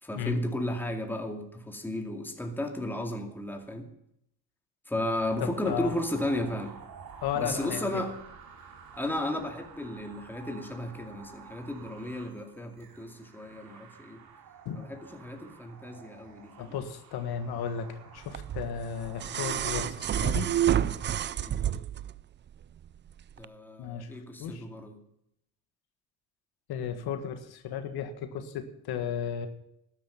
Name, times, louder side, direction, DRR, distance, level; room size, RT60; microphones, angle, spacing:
voice 1, 0.0-3.9 4.9-6.8 7.3-8.1 8.9-14.2 14.7-16.7 21.4-21.7 23.4-25.0, left 1 dB, 5° left, 3 dB, 2.3 m, -34 dB
sound 1, 5.2-21.1, right 6 dB, 60° right, 2.9 m, -50 dB
voice 2, 5.4-5.9 7.2-8.1 14.6-14.9 16.6-20.5 23.8-24.6 26.7-29.5, left 8 dB, 65° left, 8 dB, 1.6 m, -34 dB
sound 2, 18.3-22.1 23.4-23.5, right 10 dB, 30° right, 0.4 m, -29 dB
13.0 x 11.0 x 5.8 m, 0.78 s
cardioid pair, 110°, 41 cm